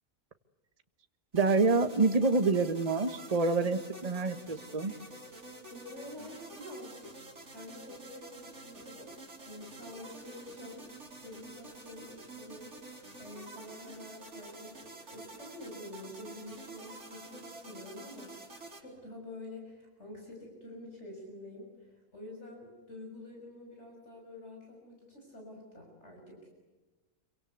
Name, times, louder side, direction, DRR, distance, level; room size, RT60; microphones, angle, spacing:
voice 1, 1.3-4.9, right 3 dB, 25° right, 9 dB, 1.3 m, -27 dB
sound 1, 1.3-18.8, right 2 dB, 50° right, 4.6 m, -49 dB
voice 2, 5.7-7.1 7.5-18.5 18.8-26.5, left 1 dB, 50° left, 0 dB, 6.8 m, -48 dB
27.5 x 24.5 x 8.2 m, 1.2 s
omnidirectional pair, 1.5 m